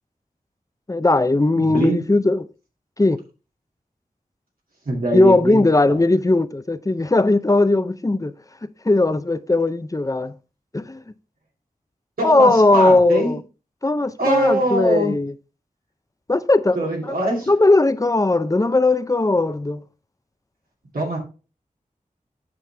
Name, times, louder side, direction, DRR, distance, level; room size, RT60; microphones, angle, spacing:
voice 1, 0.9-2.4 3.0-3.2 5.1-8.3 8.8-10.3 10.7-11.0 12.2-13.4 13.8-15.3 16.3-16.8 17.5-19.8, left 2 dB, 25° left, 0.6 m, -18 dB
voice 2, 1.5-2.0 4.8-6.0 12.2-13.4 14.2-15.1 16.7-17.5 20.9-21.2, right 1 dB, 90° right, 2.5 m, -23 dB
7.9 x 5.9 x 3.4 m
wide cardioid pair, 65°, 15 cm